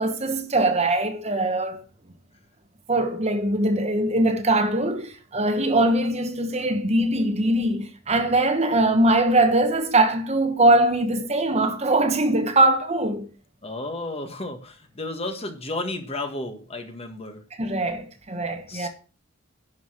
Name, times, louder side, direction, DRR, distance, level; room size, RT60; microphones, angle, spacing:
voice 1, 0.0-1.8 2.9-13.2 17.6-18.9, right 2 dB, 30° right, 1.2 m, -22 dB
voice 2, 13.6-17.4 18.7-18.9, left 2 dB, 30° left, 1.7 m, -32 dB
11.0 x 5.5 x 6.4 m
head